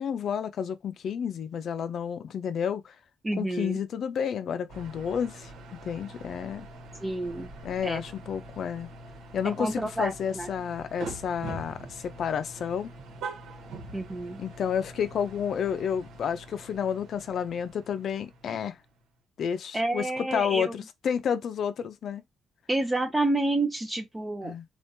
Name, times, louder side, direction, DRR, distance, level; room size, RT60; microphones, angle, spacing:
voice 1, 0.0-2.9 3.4-6.7 7.6-8.9 9.3-12.9 14.4-18.8 19.4-22.2 24.4-24.6, left 7 dB, 60° left, 0.5 m, -31 dB
voice 2, 3.2-3.8 7.0-7.5 7.8-8.0 9.4-10.5 13.9-14.4 19.7-20.7 22.7-24.5, right 2 dB, 15° right, 0.6 m, -29 dB
sound 1, 4.7-19.0, right 2 dB, 85° right, 1.2 m, -44 dB
3.6 x 2.5 x 2.7 m
cardioid pair, 90°, 0 cm